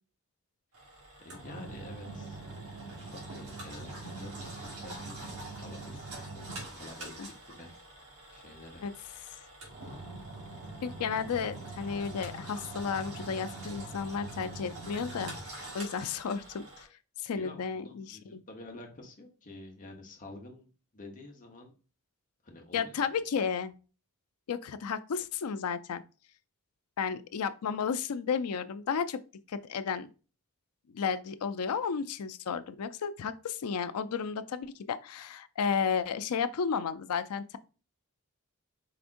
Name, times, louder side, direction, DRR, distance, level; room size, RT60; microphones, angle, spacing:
Engine, 0.7-16.8, right 2 dB, 75° right, 1.9 m, -43 dB
voice 1, 1.2-2.4 3.0-4.4 4.8-8.9 17.3-20.7 20.9-21.7 22.4-23.0, left 2 dB, 35° left, 1.1 m, -49 dB
voice 2, 10.8-16.9 17.2-18.4 22.7-23.7 24.5-26.0 27.0-29.2 29.5-30.1 30.9-37.6, left 6 dB, 80° left, 0.4 m, -33 dB
4.9 x 3.4 x 2.5 m
head